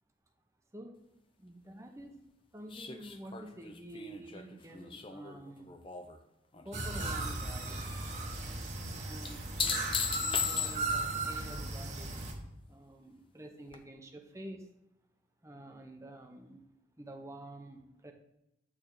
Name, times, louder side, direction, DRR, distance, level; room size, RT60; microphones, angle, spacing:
voice 1, 1.4-2.2 2.5-5.7 6.6-7.9 8.8-9.8 10.2-12.1 12.7-14.6 15.4-16.6 17.0-18.1, right 1 dB, 15° right, 3 dB, 0.8 m, -49 dB
sound 1, 2.7-6.2 6.5-7.1 9.2-11.1 13.7-13.8, left 6 dB, 25° left, 0.5 m, -36 dB
sound 2, 6.7-12.3, right 2 dB, 35° right, 1.1 m, -37 dB
8.9 x 3.5 x 6.3 m, 0.89 s
head